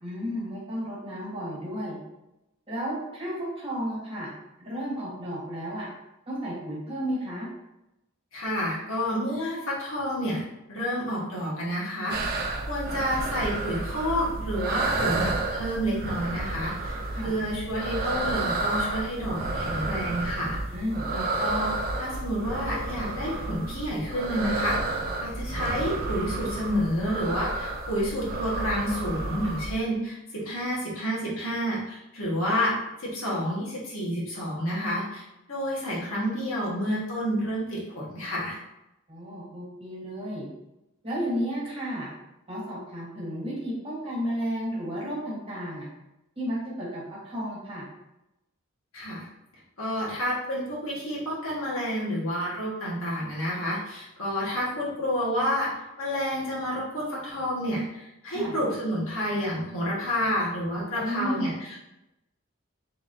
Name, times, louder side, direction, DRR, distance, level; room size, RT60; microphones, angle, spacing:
voice 1, 0.0-2.0 2.7-4.3 4.6-5.9 6.3-7.5 17.1-17.3 20.7-21.1 39.1-40.5 41.0-42.1 42.5-45.9 46.4-47.8 58.3-58.6 60.9-61.5, equal, 25° right, -6 dB, 1.4 m, -32 dB
voice 2, 8.3-10.4 10.7-12.2 12.7-20.6 21.1-21.7 22.0-32.7 33.0-38.6 48.9-49.3 49.8-55.7 56.0-61.8, equal, 80° left, -6 dB, 1.4 m, -29 dB
sound 1, 12.1-29.8, right 2 dB, 45° right, 0.4 m, -31 dB
4.0 x 3.5 x 2.6 m, 0.91 s
head